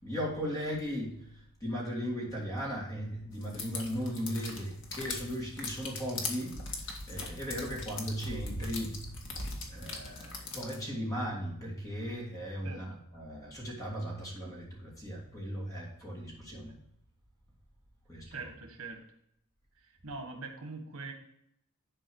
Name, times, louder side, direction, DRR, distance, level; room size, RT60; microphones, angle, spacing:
voice 1, 0.0-6.6 7.1-9.0 9.7-16.7 18.1-18.5, equal, 15° left, -4 dB, 2.9 m, -37 dB
sound 1, 3.4-10.8, left 2 dB, 55° left, 1.7 m, -40 dB
voice 2, 18.3-19.1 19.8-21.1, right 3 dB, 80° right, 4 dB, 1.5 m, -43 dB
11.0 x 4.5 x 4.7 m, 0.74 s
head